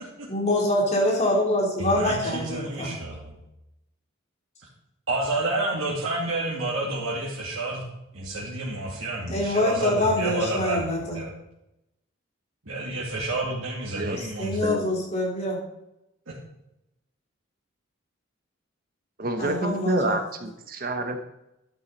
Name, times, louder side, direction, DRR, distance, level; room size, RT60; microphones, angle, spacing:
voice 1, 0.3-2.9 9.3-11.2 14.4-15.6 19.4-20.2, left 1 dB, 35° left, -2 dB, 3.5 m, -25 dB
voice 2, 1.8-3.4 5.1-7.8 8.1-11.3 12.6-14.6 16.3-16.4, right 2 dB, 80° right, -7 dB, 2.8 m, -29 dB
voice 3, 14.6-14.9 19.2-21.2, right 1 dB, 45° right, 6 dB, 1.2 m, -28 dB
12.5 x 9.5 x 4.2 m, 0.88 s
head